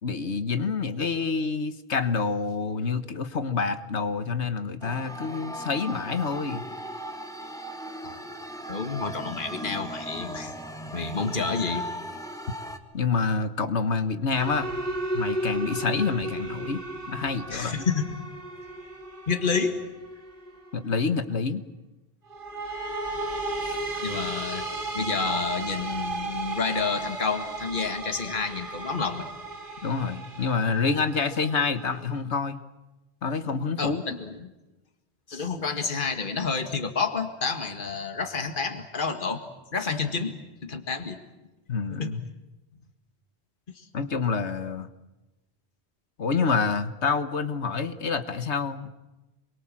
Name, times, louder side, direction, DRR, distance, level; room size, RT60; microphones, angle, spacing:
voice 1, 0.0-6.7 12.9-14.7 15.1-16.8 17.1-17.8 20.7-21.6 23.6-23.8 29.8-32.6 33.2-34.0 41.7-42.3 43.9-44.9 46.2-48.9, left 4 dB, 85° left, 11 dB, 1.7 m, -27 dB
sound 1, 4.8-12.8, equal, 5° left, 1.8 m, -38 dB
voice 2, 8.7-10.5 10.9-11.9 17.5-18.1 19.3-19.8 24.0-24.7 24.9-29.3 33.8-34.5 35.3-39.4 39.7-41.2 42.0-42.1 43.8-43.9, left 5 dB, 50° left, 6 dB, 2.0 m, -29 dB
sound 2, 14.3-20.8 22.3-32.2, right 2 dB, 50° right, 3.6 m, -34 dB
28.5 x 22.5 x 7.6 m, 1.0 s
omnidirectional pair, 1.1 m